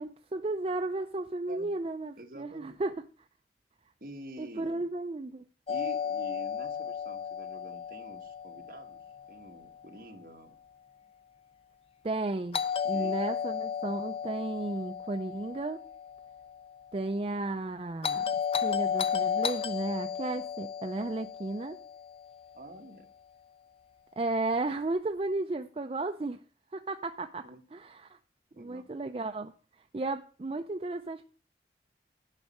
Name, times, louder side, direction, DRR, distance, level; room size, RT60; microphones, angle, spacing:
voice 1, 0.0-3.0 4.4-5.4 12.0-15.8 16.9-18.2 18.6-21.8 24.2-26.4 26.7-27.5 27.7-28.2 28.6-29.5 29.9-31.2, right 2 dB, 30° right, 0.4 m, -34 dB
voice 2, 2.2-2.8 4.0-4.9 5.7-10.6 12.9-13.4 22.5-23.1 27.4-27.6 28.5-28.8, right 1 dB, 55° right, 1.4 m, -48 dB
Doorbell, 5.7-9.7 12.5-16.8 18.0-22.4, left 7 dB, 35° left, 0.4 m, -34 dB
10.5 x 5.3 x 6.6 m
head